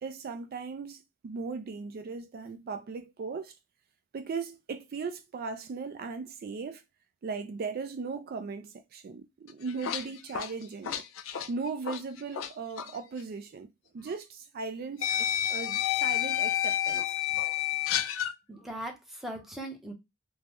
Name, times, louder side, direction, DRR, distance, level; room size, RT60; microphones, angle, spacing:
voice 1, 0.0-3.5 4.1-6.8 7.2-11.0 11.5-13.7 13.9-15.1 15.5-17.2, right 4 dB, 50° right, 0.3 m, -38 dB
sound 1, 9.5-12.5 12.8-13.0 14.1-14.2 15.0-18.3, left 11 dB, 85° left, 0.4 m, -30 dB
voice 2, 18.5-19.9, right 1 dB, ahead, 0.7 m, -39 dB
3.5 x 2.1 x 3.0 m
head